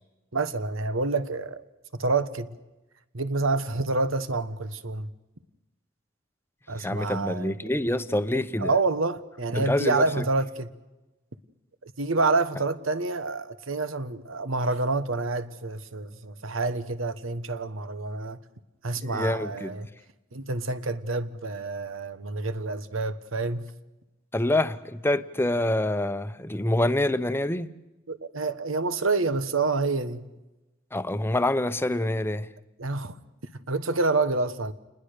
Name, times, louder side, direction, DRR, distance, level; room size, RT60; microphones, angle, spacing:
voice 1, 0.3-1.6 2.0-2.6 3.1-5.1 6.7-7.9 8.6-10.7 11.8-18.4 18.8-19.9 20.3-23.7 28.1-30.3 32.8-33.2 33.7-34.7, right 3 dB, 85° right, 1.3 m, -28 dB
voice 2, 6.8-8.7 9.5-10.2 19.0-19.7 24.3-27.7 30.9-32.5, left 1 dB, 10° left, 0.8 m, -26 dB
28.5 x 20.5 x 6.7 m
head